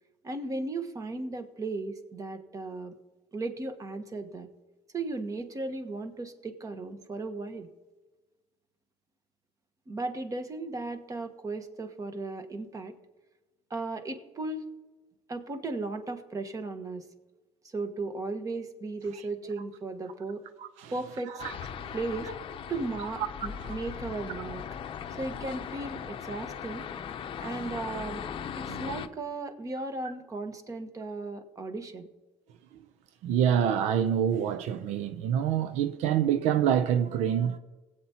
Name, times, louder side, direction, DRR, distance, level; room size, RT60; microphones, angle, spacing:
voice 1, 0.2-2.9 3.3-4.5 4.9-7.7 9.9-12.9 13.7-14.7 15.3-17.0 17.6-20.4 20.9-21.4 21.9-22.3 22.7-24.6 25.2-26.9 27.4-28.3 28.6-32.1, right 3 dB, 30° right, 1.2 m, -36 dB
voice 2, 20.6-20.9 21.2-22.0 23.2-23.3 23.6-23.8 28.7-28.9 33.2-37.6, right 9 dB, 80° right, 0.5 m, -27 dB
sound 1, 21.4-29.1, left 8 dB, 50° left, 0.7 m, -39 dB
20.0 x 8.4 x 2.9 m
cardioid pair, 105°, 11 cm